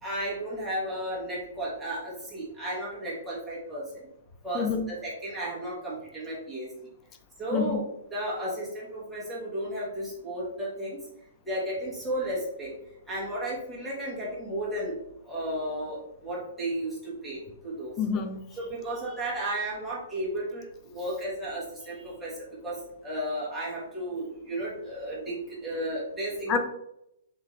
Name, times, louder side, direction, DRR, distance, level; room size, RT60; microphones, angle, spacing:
voice 1, 0.0-4.1 4.4-6.7 7.4-7.8 8.1-11.0 11.4-12.8 13.1-15.0 15.2-17.9 18.5-26.6, right 1 dB, 5° right, 1.1 m, -33 dB
voice 2, 4.5-4.9 7.5-7.8 18.0-18.4 26.5-26.6, left 6 dB, 15° left, 0.4 m, -27 dB
3.7 x 3.2 x 3.1 m
hypercardioid pair, 180°, 0 cm